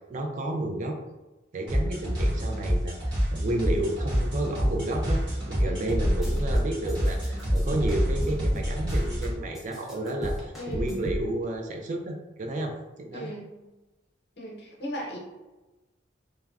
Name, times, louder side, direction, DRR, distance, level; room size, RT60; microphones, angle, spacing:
voice 1, 0.1-1.0 1.5-3.0 3.3-13.3, right 1 dB, 40° right, 2 dB, 0.3 m, -31 dB
sound 1, 1.7-9.3, equal, 75° right, 1.3 m, -27 dB
sound 2, 5.9-6.6 6.9-9.3 9.5-11.2, equal, ahead, 0.7 m, -31 dB
voice 2, 10.5-10.9 13.1-13.5 14.4-15.2, equal, 60° left, -3 dB, 0.8 m, -37 dB
3.3 x 2.1 x 2.3 m, 1.1 s
head